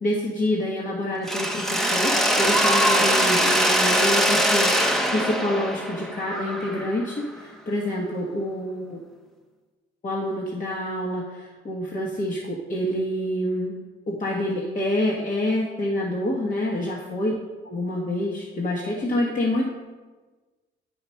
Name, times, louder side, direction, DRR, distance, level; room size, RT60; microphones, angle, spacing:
voice 1, 0.0-9.0 10.0-13.8 14.1-17.3 17.6-19.7, left 1 dB, 40° left, -2 dB, 1.3 m, -27 dB
Mechanisms, 1.3-7.1, equal, ahead, 0.8 m, -22 dB
8.7 x 4.9 x 5.6 m, 1.3 s
cardioid pair, 90°, 20 cm